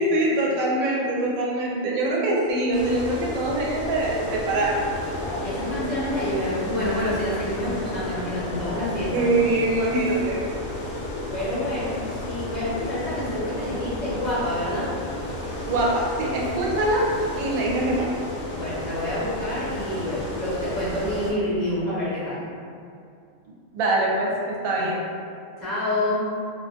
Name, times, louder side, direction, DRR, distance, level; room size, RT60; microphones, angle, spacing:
voice 1, 0.0-4.8 9.1-10.4 15.7-17.1 17.4-18.1 23.7-25.0, right 1 dB, 85° right, -3 dB, 1.0 m, -23 dB
sound 1, 2.7-21.3, left 1 dB, 80° left, 1.0 m, -32 dB
voice 2, 5.4-9.3 11.3-14.9 18.5-22.5 24.8-24.9 25.6-26.3, left 1 dB, 45° left, -11 dB, 0.6 m, -28 dB
2.5 x 2.2 x 2.6 m, 2.4 s
omnidirectional pair, 1.4 m